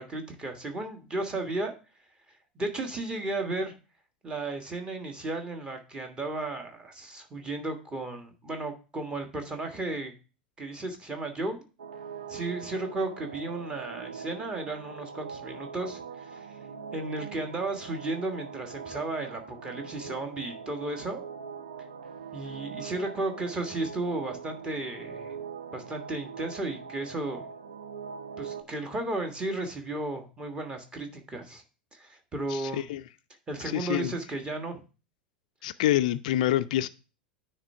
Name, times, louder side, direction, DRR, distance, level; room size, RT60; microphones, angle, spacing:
voice 1, 0.0-1.7 2.5-3.7 4.2-10.1 10.6-11.6 12.3-16.6 16.9-21.2 22.3-25.4 25.7-27.5 28.4-31.6 31.9-32.9 33.5-34.8, right 2 dB, 20° right, 1.4 m, -34 dB
sound 1, 11.8-28.6, right 6 dB, 70° right, 0.8 m, -42 dB
voice 2, 32.5-33.0 33.6-34.2 35.6-36.9, left 13 dB, 55° left, 0.3 m, -27 dB
9.5 x 3.3 x 5.4 m
figure-of-eight pair, 85°, 5 cm